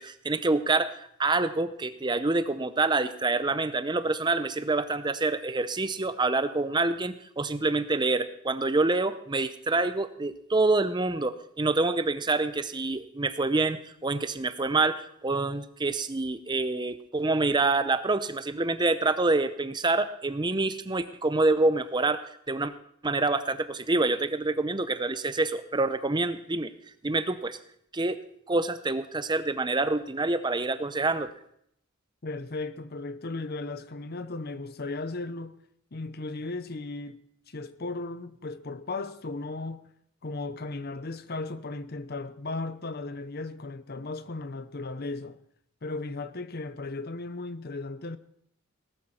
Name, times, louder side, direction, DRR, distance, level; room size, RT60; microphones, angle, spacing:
voice 1, 0.0-22.7 23.0-26.7 27.0-27.6 27.9-28.2 28.5-31.3, right 3 dB, 20° right, 0.7 m, -27 dB
voice 2, 32.2-35.6 35.9-37.2 37.5-39.9 40.2-45.4 45.8-48.2, left 3 dB, 50° left, 0.8 m, -36 dB
18.5 x 12.5 x 4.3 m
head